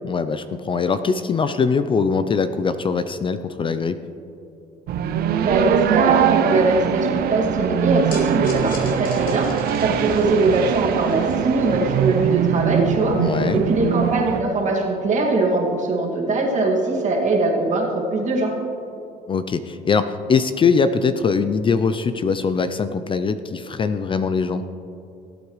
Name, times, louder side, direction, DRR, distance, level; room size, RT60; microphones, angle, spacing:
voice 1, 0.0-4.0 13.1-13.6 19.3-24.6, left 5 dB, 30° left, 11 dB, 0.4 m, -22 dB
sound 1, 4.9-14.4, right 9 dB, 65° right, 0.6 m, -22 dB
voice 2, 5.4-18.5, right 2 dB, 45° right, -1 dB, 2.2 m, -21 dB
sound 2, 8.1-14.5, left 2 dB, 55° left, 2.7 m, -40 dB
17.5 x 8.5 x 3.2 m, 2.7 s
cardioid pair, 110°, 17 cm